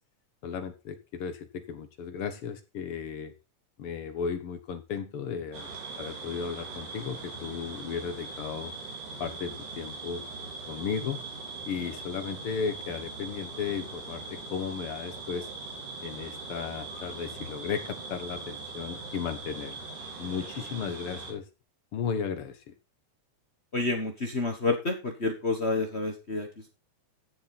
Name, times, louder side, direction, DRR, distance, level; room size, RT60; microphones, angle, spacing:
voice 1, 0.4-3.3 3.8-5.7 6.0-8.7 9.2-10.2 10.7-11.2 11.7-15.5 16.0-19.9 20.2-21.5 21.9-22.7, left 6 dB, 55° left, 10 dB, 1.9 m, -35 dB
sound 1, 5.5-21.3, right 3 dB, 80° right, 4.6 m, -41 dB
voice 2, 23.7-26.7, left 3 dB, 40° left, 4 dB, 0.9 m, -29 dB
14.0 x 7.4 x 4.1 m, 0.28 s
omnidirectional pair, 3.5 m